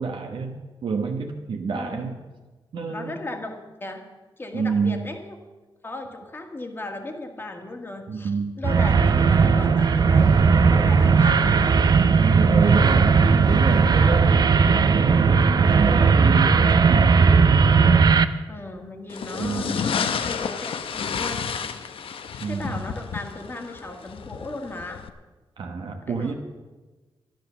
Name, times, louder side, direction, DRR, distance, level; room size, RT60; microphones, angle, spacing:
voice 1, 0.0-2.2 2.7-3.2 4.5-5.1 8.1-8.5 12.2-13.2 13.4-14.4 14.9-17.6 19.4-19.8 22.4-22.8 25.6-26.3, right 5 dB, 60° right, 2 dB, 1.1 m, -28 dB
voice 2, 1.7-2.1 2.9-4.1 4.4-5.4 5.8-8.3 8.6-11.6 12.8-13.1 13.5-14.5 18.5-21.9 22.5-25.0 26.1-26.3, left 2 dB, 25° left, 4 dB, 1.6 m, -37 dB
sound 1, 8.6-18.2, right 5 dB, 45° right, 0.6 m, -17 dB
sound 2, 19.1-25.1, left 6 dB, 80° left, 0.8 m, -31 dB
12.0 x 12.0 x 6.8 m, 1.2 s
wide cardioid pair, 180°, 9 cm